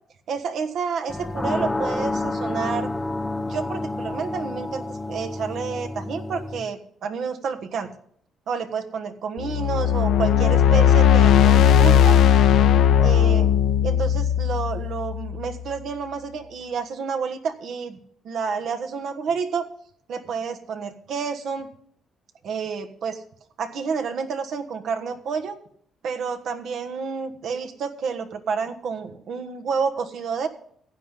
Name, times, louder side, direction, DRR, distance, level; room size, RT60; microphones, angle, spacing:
voice 1, 0.3-2.9 3.4-7.9 8.5-12.2 13.0-13.5 13.8-18.0 18.2-19.7 20.1-21.7 22.4-23.2 23.6-25.6 26.0-30.5, right 5 dB, 70° right, 7 dB, 1.4 m, -29 dB
sound 1, 1.1-6.6, left 2 dB, 20° left, 1.0 m, -29 dB
sound 2, 9.4-15.6, left 9 dB, 85° left, 0.8 m, -17 dB
15.5 x 9.8 x 3.8 m, 0.62 s
cardioid pair, 90°, 0 cm